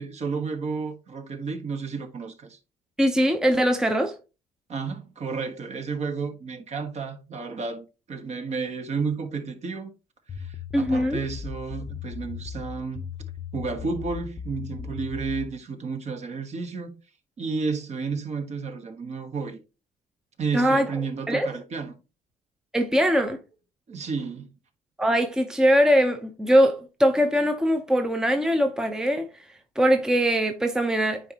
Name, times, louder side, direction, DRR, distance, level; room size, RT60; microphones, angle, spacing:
voice 1, 0.0-2.6 4.7-9.9 10.3-13.0 13.5-16.9 17.4-19.6 20.4-21.9 23.9-24.5, right 4 dB, 40° right, 1.3 m, -32 dB
voice 2, 3.0-4.2 10.7-11.2 20.5-20.9 21.3-21.5 22.7-23.4 25.0-29.3 29.8-31.2, equal, 5° right, 0.7 m, -21 dB
sound 1, 10.3-15.5, left 7 dB, 35° left, 0.7 m, -37 dB
9.5 x 4.0 x 2.8 m
cardioid pair, 110°, 17 cm